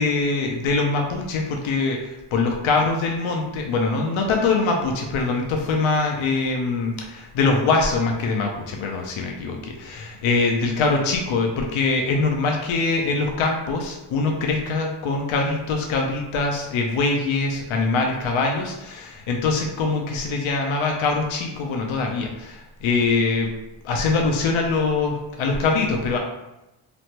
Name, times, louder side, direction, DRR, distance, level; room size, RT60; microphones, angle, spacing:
voice 1, 0.0-23.5 23.8-26.2, left 3 dB, 80° left, 1 dB, 0.6 m, -23 dB
3.1 x 2.1 x 2.8 m, 0.96 s
cardioid pair, 70°, 47 cm